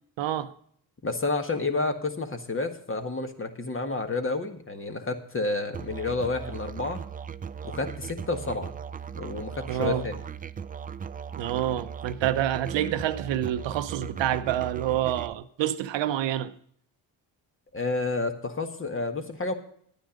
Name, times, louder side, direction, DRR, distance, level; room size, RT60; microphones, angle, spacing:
voice 1, 0.2-0.5 9.7-10.0 11.4-16.5, right 11 dB, 70° right, 0.8 m, -27 dB
voice 2, 1.0-7.0 7.6-8.8 9.1-10.1 17.7-19.5, left 3 dB, 25° left, 1.6 m, -30 dB
Musical instrument, 5.7-15.3, right 7 dB, 20° right, 0.4 m, -38 dB
11.0 x 9.2 x 5.1 m
supercardioid pair, 70°, 47 cm